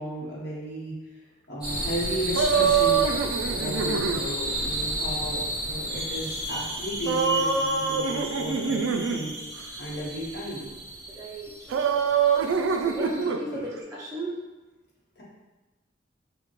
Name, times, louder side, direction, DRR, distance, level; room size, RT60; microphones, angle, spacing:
voice 1, 0.0-9.4 9.8-10.7 13.5-13.6 15.2-15.3, equal, 55° left, -7 dB, 1.0 m, -34 dB
sound 1, 1.6-13.2, right 1 dB, 20° left, 1.3 m, -33 dB
sound 2, 2.3-4.2 7.1-9.3 11.7-13.4, right 6 dB, 85° right, 0.3 m, -24 dB
voice 2, 11.1-11.9 12.8-14.4, right 1 dB, 15° right, -6 dB, 0.4 m, -36 dB
4.7 x 2.2 x 3.0 m, 1.1 s
head